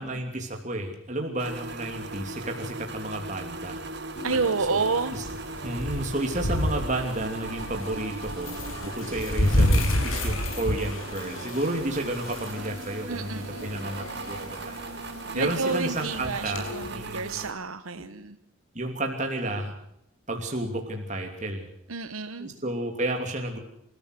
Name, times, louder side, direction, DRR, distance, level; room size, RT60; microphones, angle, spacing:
voice 1, 0.0-3.8 4.7-4.8 5.1-5.2 5.6-14.8 15.0-17.3 17.9-18.0 18.7-19.7 20.3-21.6 22.4-23.6, right 1 dB, 35° right, 3 dB, 2.9 m, -32 dB
sound 1, 1.4-17.5, right 3 dB, 55° right, 1.8 m, -39 dB
sound 2, 4.2-16.9, left 1 dB, 90° left, 5.9 m, -31 dB
voice 2, 4.2-5.1 13.1-13.7 15.3-18.4 21.9-22.5, right 4 dB, 90° right, 10 dB, 1.1 m, -29 dB
28.0 x 14.5 x 6.7 m, 0.75 s
head